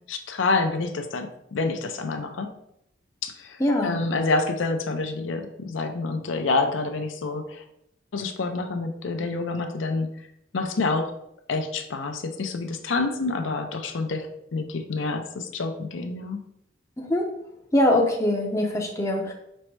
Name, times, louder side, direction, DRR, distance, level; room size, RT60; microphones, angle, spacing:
voice 1, 0.1-2.5 3.2-7.6 8.1-10.1 10.5-11.1 11.5-16.4, left 3 dB, 75° left, 6 dB, 0.5 m, -27 dB
voice 2, 3.6-4.0 17.0-17.3 17.7-19.3, left 1 dB, 15° left, 0 dB, 0.5 m, -22 dB
5.2 x 2.1 x 4.5 m, 0.77 s
head